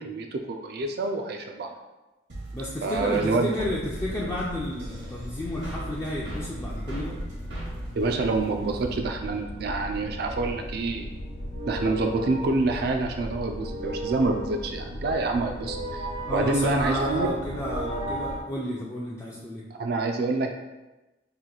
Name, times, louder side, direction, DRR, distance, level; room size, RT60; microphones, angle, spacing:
voice 1, 0.0-1.7 2.8-3.5 7.9-11.1 11.7-17.3 19.8-20.5, right 3 dB, 60° right, 4 dB, 0.3 m, -27 dB
sound 1, 2.3-8.9, right 2 dB, 85° right, 1.0 m, -40 dB
voice 2, 2.5-7.2 16.3-19.6, left 1 dB, 15° left, -6 dB, 0.4 m, -31 dB
sound 2, 3.6-18.4, left 1 dB, 75° left, 0.5 m, -38 dB
sound 3, 10.4-18.4, right 1 dB, 50° left, 1.0 m, -36 dB
2.9 x 2.5 x 3.8 m, 1.1 s
head